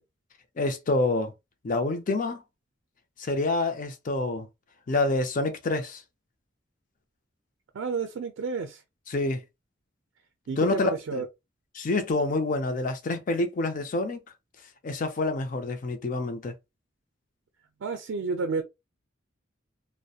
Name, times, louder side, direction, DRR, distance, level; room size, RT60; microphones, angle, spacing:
voice 1, 0.6-1.3 1.6-2.4 3.2-4.5 4.9-6.0 9.1-9.4 10.6-11.2 11.7-14.2 14.8-16.5, left 2 dB, 45° left, 0.4 m, -27 dB
voice 2, 7.7-8.8 10.5-11.3 17.8-18.6, right 4 dB, 75° right, 0.4 m, -30 dB
2.7 x 2.1 x 2.3 m
head